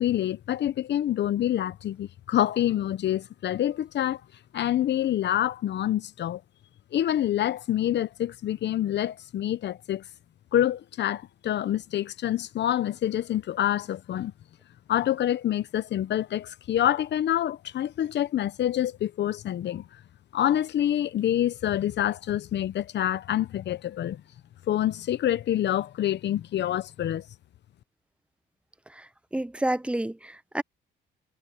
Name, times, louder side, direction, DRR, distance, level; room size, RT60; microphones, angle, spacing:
voice 1, 0.0-4.2 4.5-6.4 6.9-10.0 10.5-14.3 14.9-19.8 20.3-24.2 24.7-27.2, left 11 dB, 60° left, 0.8 m, -27 dB
voice 2, 29.3-30.6, right 1 dB, 5° right, 0.8 m, -29 dB
cardioid pair, 90°, 20 cm